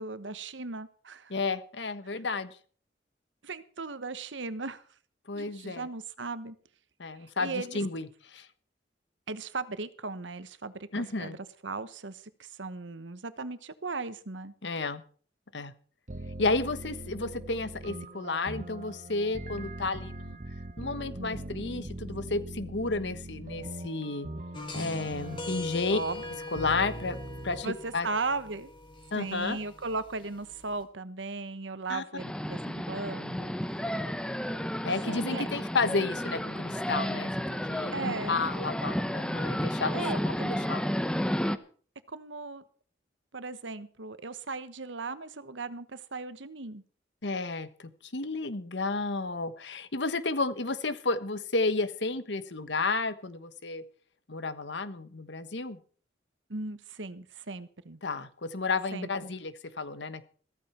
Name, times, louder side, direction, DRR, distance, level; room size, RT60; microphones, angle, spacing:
voice 1, 0.0-1.3 2.0-2.2 3.4-4.8 5.3-6.6 7.2-7.8 9.3-14.5 25.9-26.2 27.6-28.7 29.1-33.8 35.1-35.4 37.9-38.5 39.9-40.6 42.1-42.6 43.3-46.8 56.5-58.0 58.9-59.1, right 3 dB, 90° right, 13 dB, 1.2 m, -37 dB
voice 2, 1.3-2.5 5.3-5.9 7.0-8.5 10.9-11.4 14.6-15.0 15.5-15.7 16.4-20.4 20.8-24.3 24.7-26.0 26.5-27.2 27.4-28.1 29.1-29.6 31.9-32.0 32.8-32.9 34.8-40.0 40.7-40.8 47.2-53.8 54.3-55.8 58.0-60.2, left 3 dB, 75° left, 13 dB, 1.3 m, -32 dB
sound 1, 16.1-27.6, right 1 dB, 40° right, 1.0 m, -41 dB
sound 2, 24.5-30.8, left 2 dB, 25° left, 3.0 m, -42 dB
sound 3, 32.2-41.6, equal, 5° left, 0.8 m, -32 dB
15.0 x 14.0 x 4.4 m, 0.44 s
head